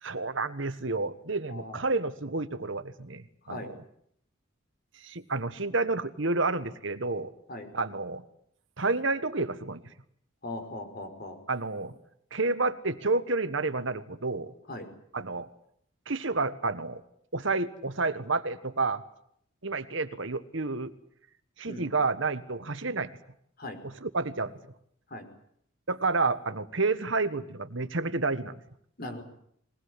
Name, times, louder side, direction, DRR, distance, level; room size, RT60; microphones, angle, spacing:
voice 1, 0.0-3.7 5.0-7.3 7.7-8.2 8.8-9.8 11.5-11.9 12.3-14.5 15.1-15.5 16.1-17.0 17.3-19.0 19.6-20.9 21.6-23.1 23.8-24.6 25.9-28.6, right 3 dB, 65° right, 11 dB, 1.5 m, -30 dB
voice 2, 1.5-1.8 3.5-3.7 7.5-7.7 10.4-11.4 14.7-14.9 21.7-21.8 23.6-23.8 25.1-25.3 29.0-29.2, left 2 dB, 50° left, 6 dB, 5.3 m, -39 dB
22.5 x 20.0 x 9.8 m, 0.69 s
head